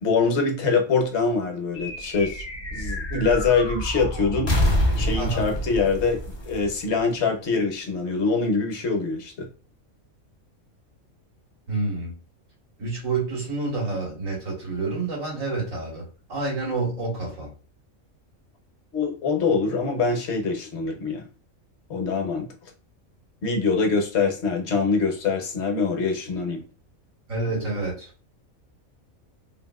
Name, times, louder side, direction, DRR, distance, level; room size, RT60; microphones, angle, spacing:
voice 1, 0.0-2.5 2.7-4.5 4.9-9.5 18.9-21.3 21.9-22.5 23.4-26.6, left 4 dB, 60° left, 1.0 m, -24 dB
sound 1, 1.7-7.4, left 1 dB, 30° left, 0.5 m, -27 dB
voice 2, 5.2-5.5 11.7-12.2 12.8-17.5 27.3-28.1, right 3 dB, 70° right, 1.9 m, -28 dB
3.4 x 2.6 x 2.3 m
omnidirectional pair, 1.4 m